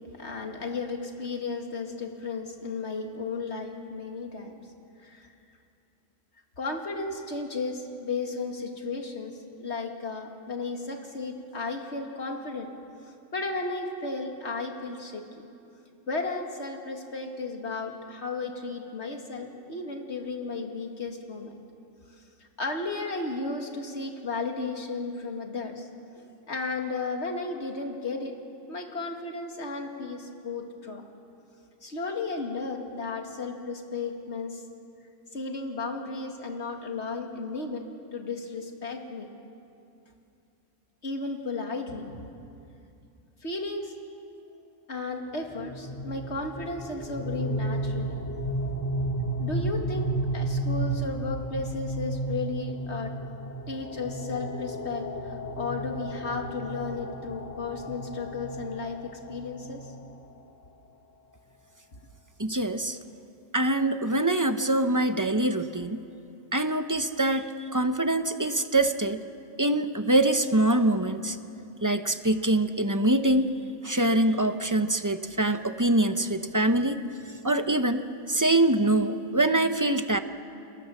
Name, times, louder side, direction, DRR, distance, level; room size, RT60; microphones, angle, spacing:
voice 1, 0.2-4.6 5.0-5.3 6.6-12.7 13.3-15.2 16.1-21.5 22.6-25.9 26.2-28.3 28.7-31.0 31.8-34.6 35.3-37.9 38.1-39.3 41.0-42.2 43.4-43.9 44.9-48.3 49.4-53.2 53.7-59.9 61.9-62.0, left 3 dB, 55° left, 3 dB, 2.5 m, -34 dB
sound 1, 45.5-60.4, right 1 dB, 15° left, 1.0 m, -33 dB
voice 2, 62.4-63.0 63.5-66.0 66.5-69.2 69.6-71.4 71.8-73.5 73.8-77.0 77.4-80.2, right 1 dB, 15° right, 8 dB, 0.8 m, -24 dB
30.0 x 22.0 x 7.2 m, 2.6 s
omnidirectional pair, 1.4 m